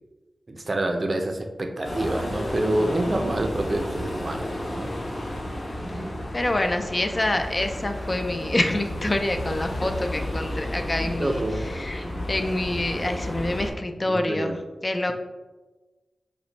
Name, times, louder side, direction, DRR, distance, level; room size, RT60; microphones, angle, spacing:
voice 1, 0.5-4.9 11.2-11.7 13.9-14.6, right 1 dB, 45° right, 4 dB, 0.4 m, -27 dB
sound 1, 1.8-13.7, left 1 dB, 70° left, 1.0 m, -32 dB
voice 2, 6.3-15.1, left 1 dB, 30° left, 6 dB, 0.3 m, -27 dB
4.3 x 2.1 x 3.9 m, 1.2 s
wide cardioid pair, 85°, 0 cm